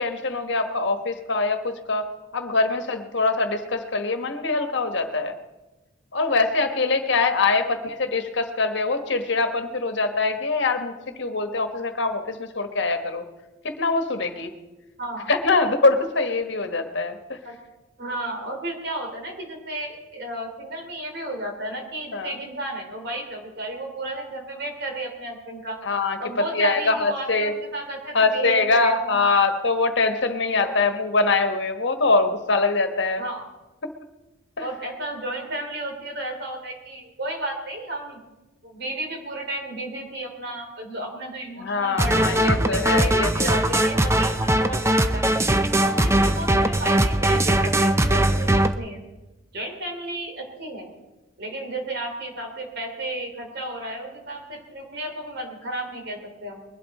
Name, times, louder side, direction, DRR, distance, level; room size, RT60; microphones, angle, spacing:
voice 1, 0.0-2.1 2.3-5.4 6.1-13.2 13.6-14.5 15.3-17.4 22.1-22.3 25.8-26.2 26.5-27.5 28.1-33.2 34.6-34.7 41.6-43.6, left 3 dB, 60° left, 7 dB, 1.2 m, -23 dB
voice 2, 15.0-15.3 17.4-17.5 18.0-25.8 26.2-29.4 30.6-30.8 33.2-33.4 34.6-38.2 38.6-45.3 45.8-49.0 49.5-50.9 51.4-56.6, right 1 dB, 55° right, 2 dB, 3.1 m, -33 dB
sound 1, 42.0-48.7, right 1 dB, 15° right, 0.5 m, -20 dB
21.5 x 11.5 x 4.2 m, 1.1 s
head